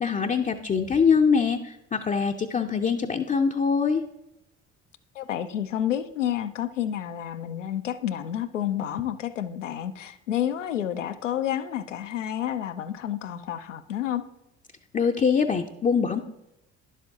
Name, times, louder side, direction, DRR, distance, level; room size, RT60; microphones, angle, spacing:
voice 1, 0.0-4.0 14.9-16.2, left 6 dB, 20° left, 4 dB, 0.5 m, -23 dB
voice 2, 5.1-14.2, left 10 dB, 85° left, 11 dB, 0.5 m, -30 dB
11.0 x 7.2 x 2.8 m, 0.86 s
figure-of-eight pair, 50°, 36 cm